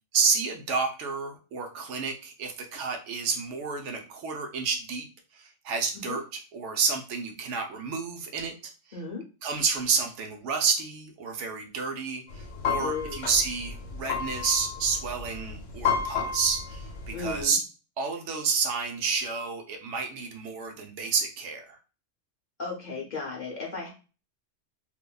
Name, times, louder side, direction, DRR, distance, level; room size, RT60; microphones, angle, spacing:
voice 1, 0.1-5.1 5.3-8.5 8.9-9.0 9.4-17.6 18.0-21.8, right 5 dB, 75° right, 3 dB, 0.9 m, -30 dB
voice 2, 8.9-9.2 12.8-13.2 17.1-17.6 22.6-23.9, left 4 dB, 50° left, -2 dB, 0.6 m, -35 dB
sound 1, 12.3-17.4, left 6 dB, 80° left, 1.0 m, -32 dB
2.9 x 2.2 x 2.2 m, 0.34 s
omnidirectional pair, 1.3 m